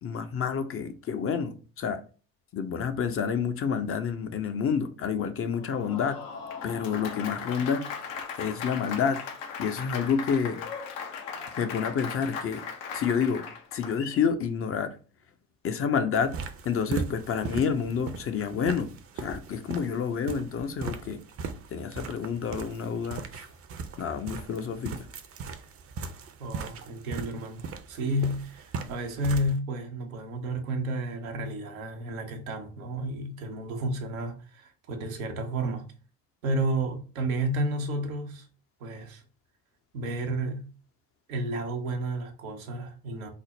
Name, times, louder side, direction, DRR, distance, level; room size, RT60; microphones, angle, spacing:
voice 1, 0.0-2.0 2.5-6.2 6.6-7.9 8.4-9.2 9.6-10.6 11.6-12.6 12.9-15.0 15.6-16.4 16.6-21.2 21.7-23.5 24.0-25.0, left 6 dB, 35° left, 0.5 m, -29 dB
Applause, 5.5-14.3, left 6 dB, 70° left, 0.7 m, -38 dB
sound 1, 16.1-29.5, right 4 dB, 35° right, 0.6 m, -39 dB
voice 2, 26.4-35.9 36.4-38.5 38.8-39.2 39.9-40.7 41.3-43.3, right 1 dB, 80° right, 0.8 m, -31 dB
3.5 x 2.0 x 3.9 m
figure-of-eight pair, 55°, 41 cm